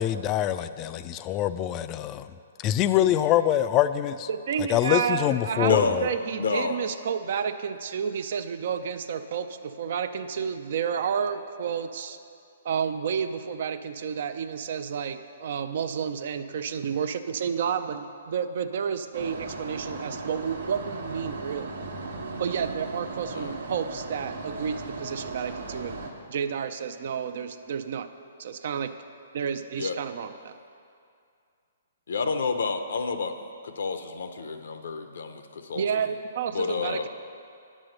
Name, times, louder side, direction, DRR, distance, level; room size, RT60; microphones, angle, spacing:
voice 1, 0.0-2.3 2.6-4.3 4.7-6.1, left 11 dB, 30° left, 13 dB, 0.3 m, -24 dB
voice 2, 4.3-5.7 6.0-12.2 12.6-21.7 22.4-26.0 26.3-28.1 28.4-28.9 29.3-30.6 35.7-37.1, right 7 dB, 60° right, 10 dB, 0.5 m, -30 dB
voice 3, 5.6-6.1 6.4-6.8 23.3-23.5 29.8-30.0 32.1-33.3 33.6-35.8 36.5-37.1, left 4 dB, 75° left, 8 dB, 0.7 m, -29 dB
sound 1, 19.1-26.1, right 3 dB, 80° right, 1.1 m, -37 dB
8.6 x 6.3 x 6.6 m, 2.4 s
hypercardioid pair, 135°, 0 cm